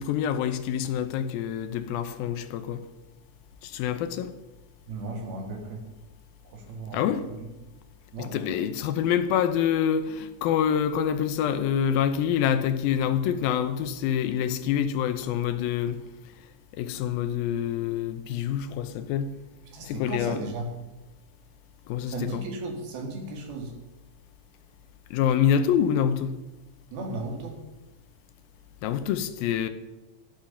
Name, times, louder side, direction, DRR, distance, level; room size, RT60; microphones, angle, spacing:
voice 1, 0.0-2.8 3.6-4.3 6.9-7.3 8.2-16.0 16.7-19.3 19.8-20.4 21.9-22.4 25.1-26.4 28.8-29.7, left 9 dB, 80° left, 11 dB, 2.5 m, -26 dB
voice 2, 4.9-5.8 6.5-7.0 8.1-8.6 19.7-20.7 22.1-23.7 26.9-27.6, right 2 dB, 75° right, 3 dB, 4.0 m, -35 dB
13.0 x 12.0 x 5.8 m, 1.0 s
omnidirectional pair, 4.4 m